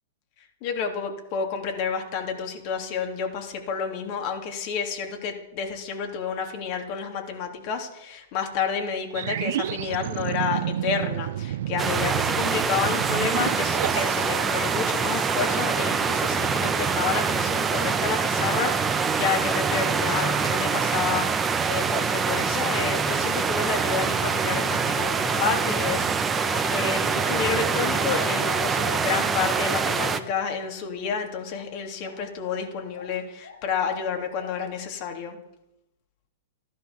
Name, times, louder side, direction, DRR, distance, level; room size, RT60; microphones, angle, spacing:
voice 1, 0.6-26.4 26.7-35.4, left 6 dB, 45° left, 3 dB, 3.1 m, -30 dB
sound 1, 9.1-16.1, right 12 dB, 60° right, 0.4 m, -32 dB
sound 2, 11.8-30.2, right 5 dB, 15° right, 1.1 m, -25 dB
sound 3, 25.1-29.5 29.8-30.5 31.0-31.2 32.0-33.6 33.9-34.7, left 4 dB, 85° left, 7.3 m, -41 dB
14.0 x 12.0 x 7.1 m, 0.89 s
hypercardioid pair, 110°, 0 cm